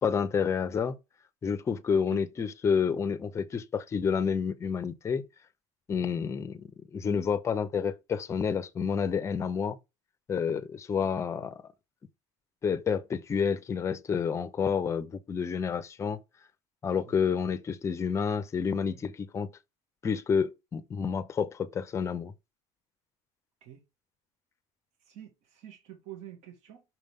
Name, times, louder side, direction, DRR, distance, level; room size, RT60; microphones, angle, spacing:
voice 1, 0.0-1.0 1.4-5.2 5.9-9.8 10.3-11.6 12.6-16.2 16.8-19.5 20.0-22.3, left 6 dB, 20° left, 0.7 m, -29 dB
voice 2, 16.9-17.2 18.9-19.0 23.6-23.8 25.1-26.8, right 12 dB, 55° right, 2.0 m, -47 dB
6.1 x 5.2 x 3.6 m
cardioid pair, 150°, 14 cm